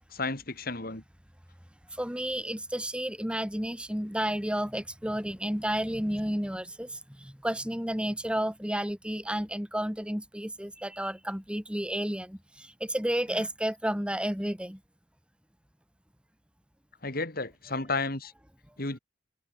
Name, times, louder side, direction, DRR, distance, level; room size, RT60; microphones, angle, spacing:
voice 1, 0.1-1.0 13.3-13.5 17.0-18.3 18.8-19.0, left 3 dB, 55° left, 3.8 m, -32 dB
voice 2, 2.0-14.8, equal, 5° right, 3.4 m, -31 dB
head